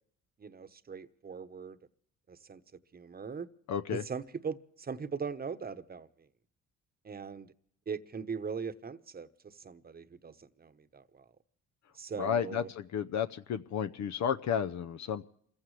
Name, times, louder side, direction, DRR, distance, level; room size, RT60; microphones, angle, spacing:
voice 1, 0.4-1.8 2.3-2.6 2.9-3.5 3.9-6.1 7.0-7.5 7.9-11.3 11.9-12.7, right 5 dB, 30° right, 1.0 m, -40 dB
voice 2, 3.7-4.0 12.2-15.3, left 8 dB, 65° left, 0.7 m, -32 dB
29.0 x 15.5 x 3.2 m
cardioid pair, 90°, 30 cm